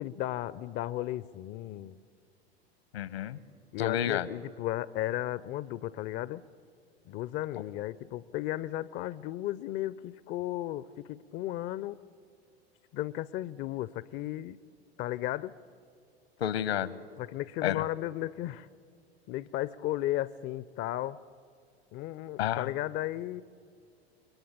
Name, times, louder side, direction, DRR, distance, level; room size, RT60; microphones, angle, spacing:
voice 1, 0.0-2.0 3.7-6.4 7.1-12.0 12.9-14.6 15.0-15.5 17.2-18.7 19.3-21.2 21.9-23.4, left 14 dB, 35° left, 18 dB, 0.6 m, -34 dB
voice 2, 2.9-3.4 3.8-4.3 16.4-17.0 17.6-17.8 22.4-22.7, left 10 dB, 70° left, 18 dB, 1.2 m, -30 dB
29.0 x 22.0 x 8.5 m, 2.3 s
figure-of-eight pair, 80°, 32 cm